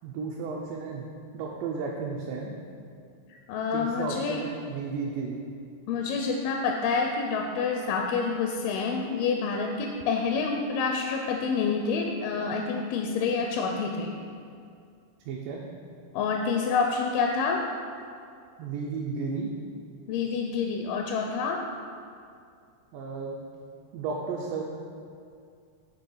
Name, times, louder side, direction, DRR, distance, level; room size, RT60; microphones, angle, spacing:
voice 1, 0.0-2.5 3.7-5.4 15.3-15.6 18.6-19.5 22.9-23.4 23.9-24.6, right 4 dB, 80° right, -2 dB, 2.0 m, -33 dB
voice 2, 3.5-4.4 5.9-14.1 16.1-17.6 20.1-21.6, left 5 dB, 85° left, 2 dB, 2.4 m, -28 dB
8.4 x 3.3 x 5.4 m, 2.3 s
omnidirectional pair, 4.4 m